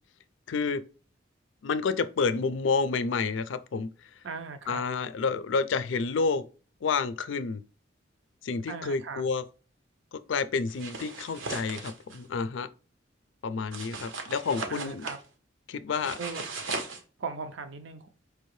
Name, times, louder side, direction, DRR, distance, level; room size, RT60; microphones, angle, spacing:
voice 1, 0.5-0.8 1.6-3.9 4.7-6.4 6.8-7.6 8.4-9.4 10.1-12.7 13.4-15.0 15.7-16.2, left 4 dB, 75° left, 0.4 m, -29 dB
voice 2, 4.2-4.8 8.7-9.2 14.7-15.2 16.2-16.4 17.2-18.1, right 5 dB, 75° right, 0.5 m, -38 dB
sound 1, 10.7-12.2 13.7-15.2 15.9-17.0, right 3 dB, 90° right, 0.9 m, -37 dB
4.8 x 2.7 x 3.1 m
head